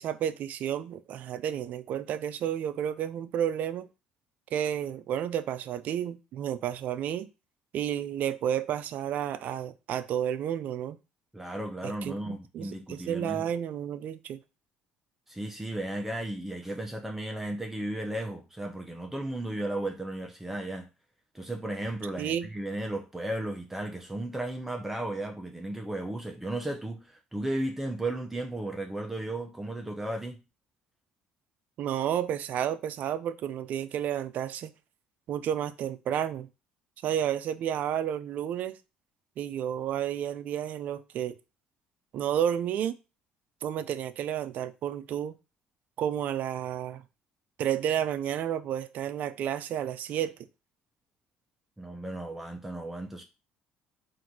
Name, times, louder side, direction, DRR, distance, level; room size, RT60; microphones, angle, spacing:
voice 1, 0.0-3.9 4.5-7.3 7.7-11.0 12.0-14.4 22.2-22.5 31.8-34.7 35.3-36.5 37.0-38.8 39.4-41.4 42.1-43.0 43.6-45.3 46.0-47.0 47.6-50.3, right 10 dB, 60° right, 0.4 m, -31 dB
voice 2, 11.3-13.4 15.3-20.9 21.3-30.4 51.8-53.2, right 1 dB, 10° right, 0.7 m, -35 dB
3.7 x 2.6 x 4.5 m
supercardioid pair, 90°, 3 cm